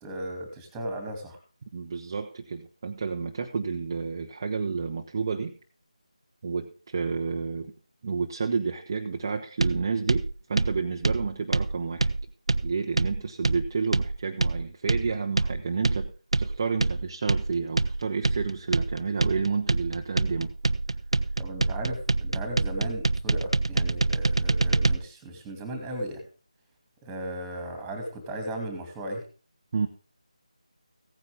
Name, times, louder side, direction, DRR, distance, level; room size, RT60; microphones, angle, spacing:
voice 1, 0.0-1.4 21.4-26.3 27.0-29.2, right 1 dB, 5° right, 3 dB, 2.6 m, -36 dB
voice 2, 1.7-5.6 6.4-7.7 8.0-12.1 12.6-16.1 16.4-20.5 29.7-29.9, right 5 dB, 30° right, 3 dB, 0.9 m, -30 dB
sound 1, 9.6-25.0, right 3 dB, 55° right, 0.7 m, -26 dB
16.0 x 9.7 x 3.6 m, 0.37 s
figure-of-eight pair, 160°, 4 cm